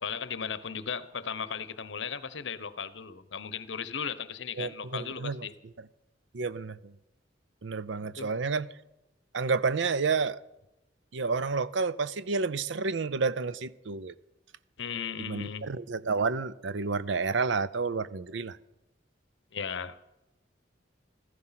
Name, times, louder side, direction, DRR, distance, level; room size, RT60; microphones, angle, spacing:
voice 1, 0.0-5.5 8.0-8.3 14.8-15.7 19.5-20.0, left 6 dB, 75° left, 0.9 m, -36 dB
voice 2, 4.6-5.5 6.3-6.9 7.6-8.7 9.3-10.4 11.1-14.1 15.2-18.6, right 4 dB, 80° right, 0.6 m, -30 dB
15.5 x 14.5 x 5.8 m
head